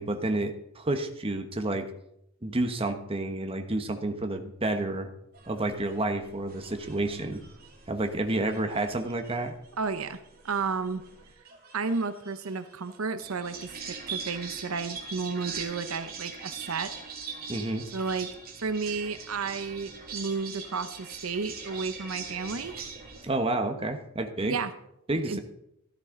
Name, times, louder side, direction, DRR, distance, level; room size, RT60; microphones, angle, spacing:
voice 1, 0.0-1.9 2.4-5.1 5.5-7.4 7.9-9.5 17.5-17.8 23.2-24.5 25.1-25.4, right 2 dB, 25° right, 6 dB, 1.1 m, -30 dB
sound 1, 5.3-23.2, right 5 dB, 45° right, 2.5 m, -42 dB
voice 2, 9.8-10.2 10.4-11.0 11.7-16.9 17.9-18.3 18.6-22.7 24.4-24.7 25.1-25.4, right 4 dB, 85° right, 11 dB, 0.8 m, -32 dB
13.5 x 12.5 x 3.8 m, 0.77 s
head